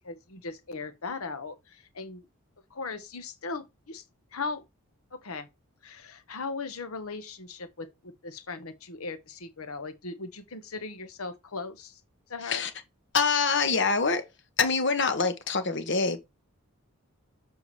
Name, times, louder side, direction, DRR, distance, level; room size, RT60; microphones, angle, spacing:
voice 1, 0.0-2.3 2.7-4.0 4.3-4.6 5.2-5.5 5.8-12.0 12.3-12.7, left 4 dB, 85° left, 1.1 m, -38 dB
voice 2, 13.1-14.3 14.6-16.2, left 4 dB, 55° left, 1.1 m, -25 dB
6.9 x 4.5 x 3.3 m
head